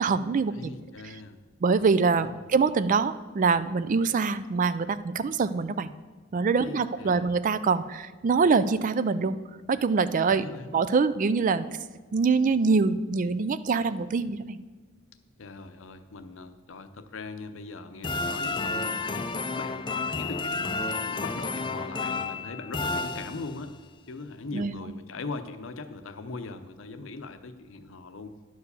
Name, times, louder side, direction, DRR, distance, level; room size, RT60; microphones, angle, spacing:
voice 1, 0.0-0.7 1.6-5.9 6.3-9.4 9.7-10.5 10.7-11.7 12.1-14.6 24.5-24.8, right 4 dB, 40° right, 15 dB, 0.4 m, -24 dB
voice 2, 0.5-1.4 2.2-2.4 6.6-7.3 10.3-10.8 15.4-19.3 19.6-23.7 24.1-28.3, left 3 dB, 70° left, 9 dB, 0.7 m, -40 dB
sound 1, 18.0-23.8, left 3 dB, 25° left, 0.5 m, -31 dB
10.5 x 4.8 x 6.8 m, 1.4 s
head